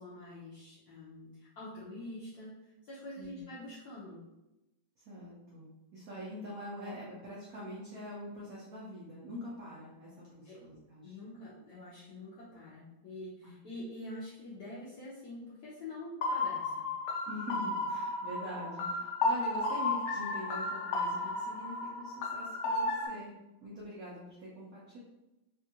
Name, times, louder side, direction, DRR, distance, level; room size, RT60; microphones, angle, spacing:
voice 1, 0.0-4.2 10.4-10.6 11.0-16.9, left 1 dB, 65° left, -8 dB, 1.0 m, -46 dB
voice 2, 5.0-11.2 13.4-13.6 17.3-23.3 23.6-25.0, left 1 dB, 65° right, -5 dB, 0.9 m, -44 dB
sound 1, 16.2-23.1, left 2 dB, 85° left, 0.8 m, -33 dB
3.5 x 2.4 x 2.7 m, 0.97 s
omnidirectional pair, 2.1 m